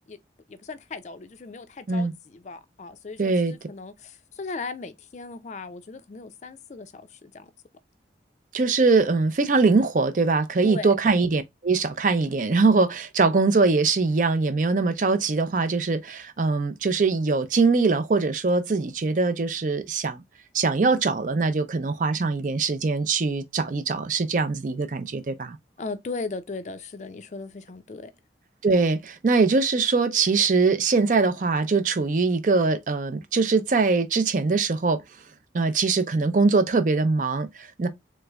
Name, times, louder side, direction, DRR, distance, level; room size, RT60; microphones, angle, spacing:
voice 1, 0.5-7.5 10.6-10.9 25.8-28.1, left 3 dB, 40° left, 0.4 m, -37 dB
voice 2, 3.2-3.5 8.5-20.2 20.5-25.6 28.6-35.0 35.5-37.9, right 4 dB, 45° right, 0.5 m, -22 dB
3.3 x 3.1 x 2.3 m
head